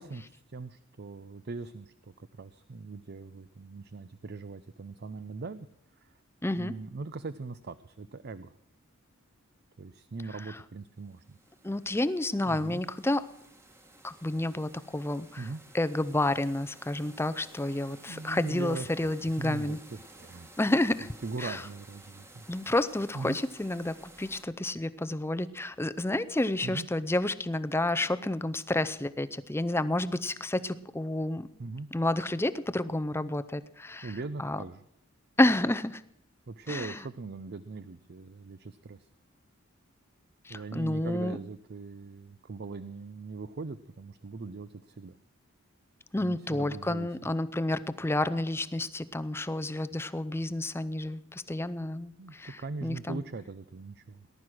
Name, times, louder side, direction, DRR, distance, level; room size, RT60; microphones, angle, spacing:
voice 1, 0.0-5.7 6.0-6.1 6.6-8.5 9.8-11.4 12.5-12.8 15.4-15.6 18.0-18.9 19.4-20.5 21.2-22.5 23.1-23.4 26.6-26.9 31.6-31.9 34.0-34.8 36.5-39.1 40.5-45.2 46.2-47.1 52.2-54.3, right 3 dB, 50° right, 14 dB, 0.5 m, -40 dB
voice 2, 6.4-6.7 10.5-10.6 11.6-13.2 14.0-15.5 15.7-19.8 20.6-21.1 21.4-21.6 22.5-31.5 31.9-34.6 35.4-36.0 36.7-37.0 40.4-41.4 46.1-53.2, left 1 dB, 10° left, 14 dB, 0.5 m, -30 dB
sound 1, 10.9-24.4, right 1 dB, 10° right, 1.3 m, -54 dB
19.0 x 11.5 x 6.1 m, 0.80 s
head